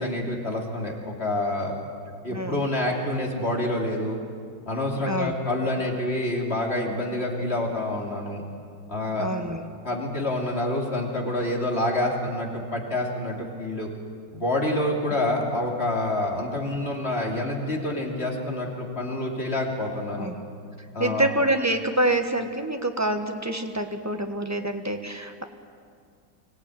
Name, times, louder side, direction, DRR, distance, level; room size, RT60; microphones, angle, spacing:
voice 1, 0.0-1.7 2.2-4.2 4.7-8.4 8.9-9.3 9.8-13.9 14.3-20.3 20.9-21.3, left 1 dB, 35° left, -1 dB, 3.3 m, -27 dB
voice 2, 2.3-2.7 5.1-5.3 9.2-9.6 15.1-15.3 20.2-20.3 21.0-25.4, right 1 dB, 10° right, 5 dB, 1.2 m, -26 dB
24.5 x 17.5 x 9.2 m, 2.2 s
omnidirectional pair, 2.0 m